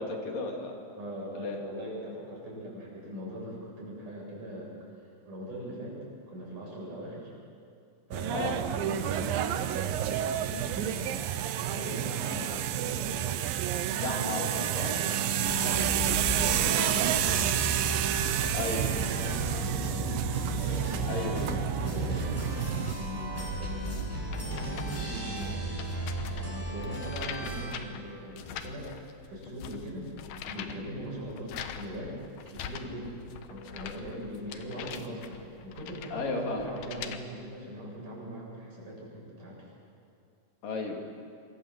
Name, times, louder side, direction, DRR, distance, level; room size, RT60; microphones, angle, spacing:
voice 1, 0.0-0.8 1.4-1.6 8.3-8.6 14.0-14.9 18.5-18.8 21.1-21.6 36.1-36.7 40.6-41.0, left 3 dB, 55° left, 1 dB, 4.3 m, -34 dB
voice 2, 1.0-4.7 5.2-6.0 6.3-7.3 8.1-11.3 11.5-13.3 14.9-21.4 21.8-25.6 26.3-30.1 30.4-32.2 32.5-33.2 33.5-39.7, equal, 50° right, -3 dB, 9.1 m, -41 dB
sound 1, 8.1-22.9, right 11 dB, 75° right, 2.3 m, -30 dB
sound 2, 15.5-27.6, right 1 dB, 10° left, 7.5 m, -35 dB
sound 3, 23.4-37.2, left 8 dB, 70° left, 3.0 m, -44 dB
26.5 x 24.5 x 7.5 m, 2.4 s
omnidirectional pair, 4.9 m